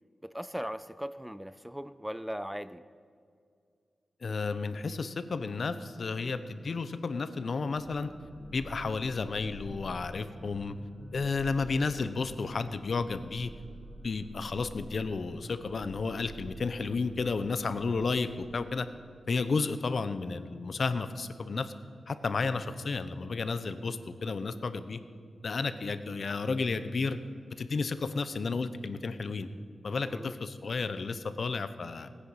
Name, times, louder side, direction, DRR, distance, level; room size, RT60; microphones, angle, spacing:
voice 1, 0.2-2.8 30.0-30.4, equal, 5° right, 14 dB, 0.4 m, -39 dB
voice 2, 4.2-8.1 8.5-10.8 11.1-13.5 14.0-18.9 19.3-21.7 22.1-25.0 25.4-27.2 27.6-29.5 29.8-32.1, left 4 dB, 60° left, 12 dB, 0.7 m, -32 dB
sound 1, 7.7-18.5, equal, 50° right, 3.0 m, -48 dB
18.0 x 9.7 x 5.7 m, 2.2 s
wide cardioid pair, 110°, 0 cm